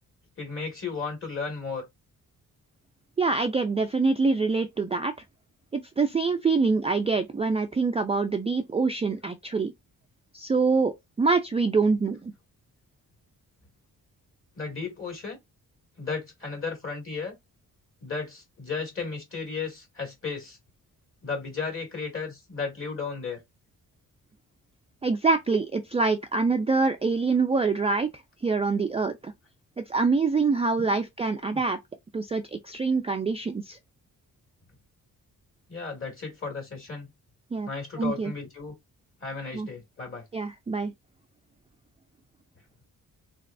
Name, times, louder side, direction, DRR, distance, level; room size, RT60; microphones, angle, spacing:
voice 1, 0.4-1.8 14.6-15.4 16.0-17.3 18.0-20.6 21.2-23.4 30.8-30.9 31.5-31.6 35.7-37.1 37.7-38.7 39.2-40.2, left 4 dB, 35° left, 2.0 m, -34 dB
voice 2, 3.2-5.1 5.7-9.7 10.3-12.3 25.0-28.1 28.4-29.3 29.8-31.8 32.1-33.8 37.5-37.7 38.0-38.3 39.5-39.7 40.3-40.9, right 4 dB, 20° right, 0.3 m, -25 dB
3.4 x 3.0 x 2.5 m
cardioid pair, 100°, 35 cm